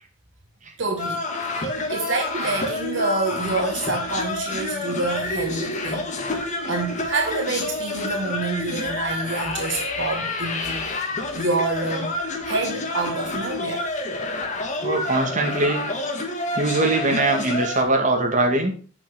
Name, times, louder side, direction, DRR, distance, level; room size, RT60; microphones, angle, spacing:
voice 1, 0.8-1.2 1.5-12.2 12.4-13.9, right 3 dB, 65° right, 1.5 m, -28 dB
sound 1, 1.0-17.8, left 2 dB, 40° left, 1.8 m, -28 dB
voice 2, 14.8-15.9 16.6-18.7, right 2 dB, 40° right, 2.3 m, -21 dB
8.8 x 6.0 x 6.0 m
head